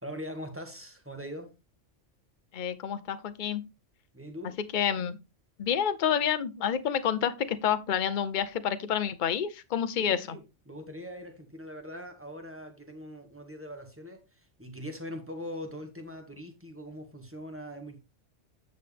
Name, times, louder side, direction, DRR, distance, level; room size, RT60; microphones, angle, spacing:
voice 1, 0.0-1.5 4.1-4.6 10.0-18.0, equal, 10° right, 1.7 m, -42 dB
voice 2, 2.5-3.6 4.7-5.2 5.6-10.2, left 8 dB, 45° left, 0.8 m, -28 dB
9.6 x 6.7 x 3.4 m
omnidirectional pair, 1.2 m